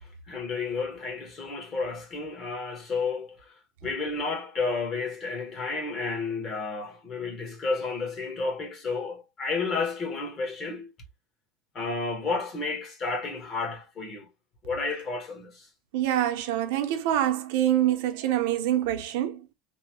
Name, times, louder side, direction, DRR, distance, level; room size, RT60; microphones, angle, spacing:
voice 1, 0.3-3.5 3.8-10.9 11.7-14.3 14.6-15.7, left 4 dB, 30° left, 1.1 m, -31 dB
voice 2, 15.9-19.4, right 12 dB, 80° right, 0.6 m, -25 dB
3.0 x 2.0 x 2.9 m
cardioid pair, 160°, 0 cm